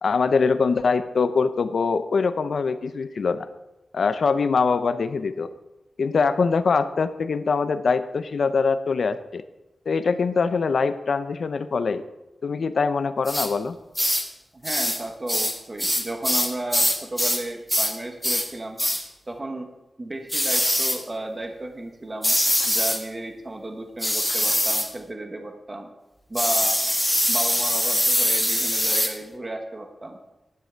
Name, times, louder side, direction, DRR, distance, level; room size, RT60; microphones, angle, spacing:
voice 1, 0.0-3.5 3.9-5.5 6.0-9.4 9.9-12.0 12.4-13.8, left 5 dB, 65° left, 11 dB, 0.6 m, -23 dB
sound 1, 13.3-13.5 13.9-14.3 14.6-15.0 15.3-17.4 17.7-17.9 18.2-18.5 18.8-19.0 20.3-21.0 22.2-23.0 24.0-24.9 26.4-29.1, equal, ahead, 1.3 m, -23 dB
voice 2, 14.5-18.8 19.3-19.7 20.0-22.3 22.7-25.9 26.3-26.8 27.3-30.2, right 2 dB, 30° right, 4 dB, 1.2 m, -33 dB
11.0 x 9.1 x 4.5 m, 0.98 s
wide cardioid pair, 115°, 0 cm